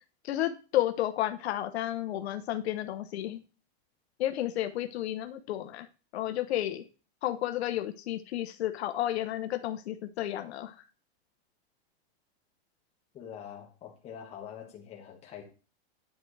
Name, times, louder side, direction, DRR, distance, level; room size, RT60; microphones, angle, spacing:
voice 1, 0.2-3.4 4.2-5.9 6.1-6.8 7.2-10.7, left 13 dB, 80° left, 0.8 m, -32 dB
voice 2, 13.1-15.4, left 8 dB, 20° left, 1.4 m, -45 dB
10.5 x 4.6 x 3.2 m
supercardioid pair, 165°, 32 cm